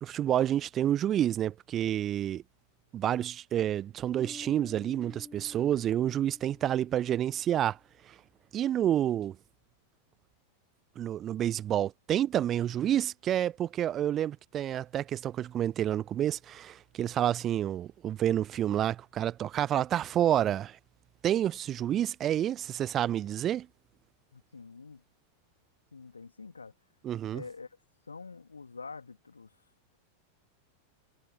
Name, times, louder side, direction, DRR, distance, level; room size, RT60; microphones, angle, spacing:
voice 1, 0.0-2.4 2.9-7.8 8.1-8.2 8.5-9.4 11.0-20.8 21.2-23.7 27.0-27.4, right 11 dB, 30° right, 0.6 m, -29 dB
Bass guitar, 4.2-7.7, left 4 dB, 10° left, 1.7 m, -50 dB
voice 2, 24.3-25.0 25.9-26.7 27.3-27.7 28.1-29.5, left 4 dB, 75° left, 2.4 m, -46 dB
figure-of-eight pair, 90°, 0 cm